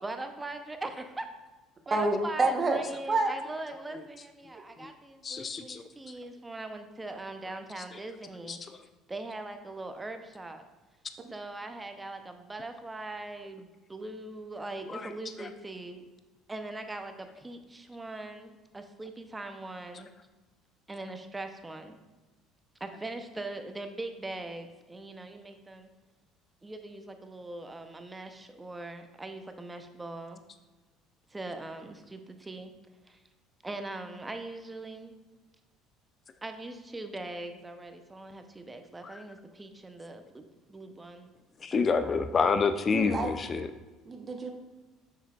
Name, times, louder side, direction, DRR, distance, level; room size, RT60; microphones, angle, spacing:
voice 1, 0.0-1.2 1.9-8.6 9.1-10.6 11.3-16.0 16.5-20.1 20.9-22.0 22.8-25.9 26.6-30.4 31.3-32.7 33.1-33.2 33.6-35.1 36.4-41.3 41.7-42.1, right 2 dB, 15° right, 7 dB, 0.7 m, -41 dB
voice 2, 1.9-2.8 3.1-3.3 42.9-43.3 44.0-44.5, right 2 dB, 30° right, 3 dB, 1.1 m, -27 dB
voice 3, 5.2-5.8 8.5-8.6 14.9-15.0 15.4-15.5 39.0-39.1 41.6-43.7, left 5 dB, 35° left, 9 dB, 0.4 m, -28 dB
6.7 x 6.6 x 2.4 m, 1.2 s
supercardioid pair, 80°, 0 cm